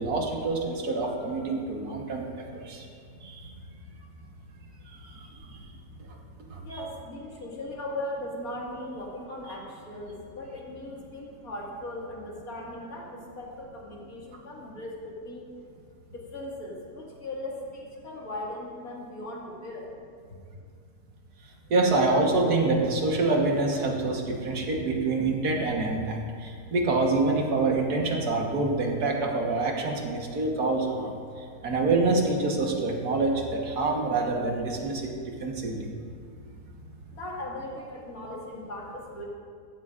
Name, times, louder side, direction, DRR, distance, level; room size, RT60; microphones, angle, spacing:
voice 1, 0.0-2.2 2.5-2.8 3.2-3.5 6.5-6.6 21.7-31.1 31.6-35.0 35.4-35.8, right 3 dB, 70° right, 0 dB, 1.8 m, -26 dB
voice 2, 6.6-15.5 16.1-19.9 37.1-39.2, left 1 dB, 60° left, -3 dB, 2.5 m, -38 dB
15.5 x 12.5 x 2.5 m, 2.3 s
omnidirectional pair, 1.7 m